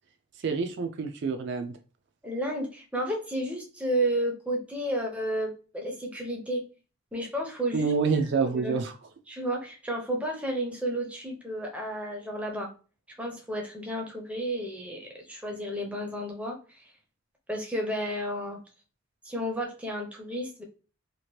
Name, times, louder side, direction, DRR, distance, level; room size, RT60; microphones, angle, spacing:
voice 1, 0.4-1.7 7.7-8.9, right 5 dB, 55° right, 7 dB, 0.3 m, -27 dB
voice 2, 2.2-6.6 7.1-8.2 8.5-8.8 9.3-12.7 13.2-16.6 17.5-18.6 19.2-20.6, right 1 dB, 5° right, 0 dB, 0.5 m, -32 dB
2.9 x 2.4 x 3.0 m, 0.36 s
head